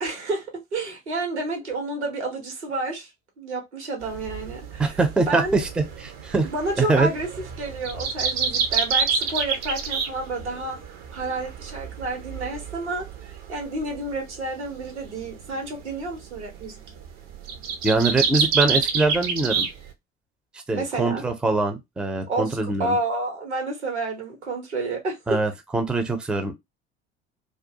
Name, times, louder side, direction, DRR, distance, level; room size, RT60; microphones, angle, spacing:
voice 1, 0.0-3.1 3.4-5.0 5.3-5.6 6.4-7.3 7.6-10.8 11.1-13.1 13.5-16.8 20.7-21.2 22.3-25.2, right 2 dB, 80° right, 1.0 m, -30 dB
sound 1, 4.0-19.9, right 6 dB, 65° right, 0.7 m, -29 dB
voice 2, 4.8-6.5 6.8-7.1 17.8-19.7 20.7-23.0 25.3-26.5, right 3 dB, 5° right, 0.4 m, -23 dB
2.3 x 2.2 x 2.7 m
figure-of-eight pair, 65°, 34 cm